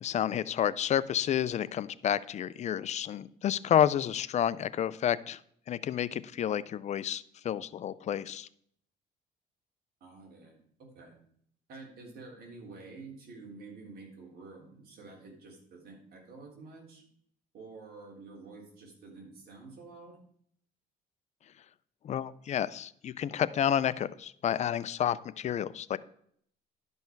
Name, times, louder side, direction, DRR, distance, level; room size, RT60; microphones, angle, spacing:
voice 1, 0.0-5.4 5.7-8.5 22.0-26.0, left 10 dB, 45° left, 17 dB, 0.4 m, -30 dB
voice 2, 10.0-10.6 10.9-11.2 11.7-17.1 17.5-20.2, right 3 dB, 65° right, -1 dB, 3.5 m, -49 dB
11.5 x 5.5 x 4.5 m, 0.65 s
cardioid pair, 110°, 17 cm